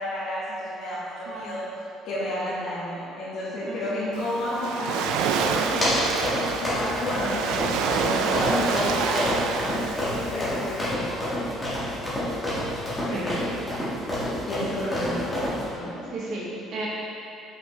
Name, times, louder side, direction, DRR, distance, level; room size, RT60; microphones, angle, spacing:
voice 1, 0.0-1.6 2.0-5.9 6.3-11.3 11.6-12.0 13.1-13.3 14.5-15.3 15.7-15.9, left 1 dB, 55° left, -12 dB, 1.4 m, -31 dB
voice 2, 1.3-1.6 3.6-4.1 7.2-7.4 9.6-9.8 13.1-13.4 16.1-16.9, right 2 dB, 50° right, -5 dB, 1.0 m, -35 dB
Waves surf, 4.1-10.9, right 6 dB, 80° right, 0.4 m, -28 dB
sound 1, 5.1-15.6, left 1 dB, 10° left, 1.5 m, -28 dB
6.9 x 5.6 x 3.1 m, 2.7 s
cardioid pair, 175°, 0 cm